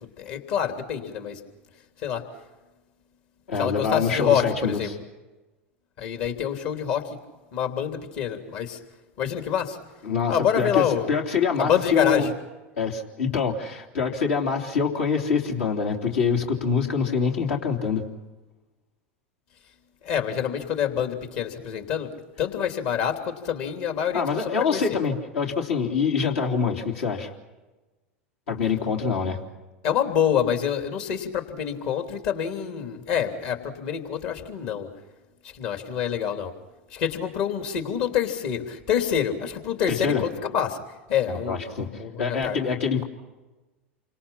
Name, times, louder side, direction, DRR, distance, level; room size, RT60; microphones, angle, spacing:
voice 1, 0.2-1.4 2.0-2.2 3.6-4.9 6.0-7.2 7.5-8.8 9.2-9.8 10.3-11.1 11.6-12.3 20.0-22.1 22.4-25.0 29.8-34.9 35.5-36.5 36.9-40.8 41.1-42.6, left 8 dB, 55° left, 5 dB, 3.3 m, -26 dB
voice 2, 3.5-4.9 10.0-12.3 12.8-18.0 24.1-27.3 28.5-29.4 39.9-40.2 41.3-43.0, left 5 dB, 75° left, 1 dB, 3.3 m, -25 dB
28.5 x 25.5 x 5.9 m, 1.2 s
hypercardioid pair, 90°, 7 cm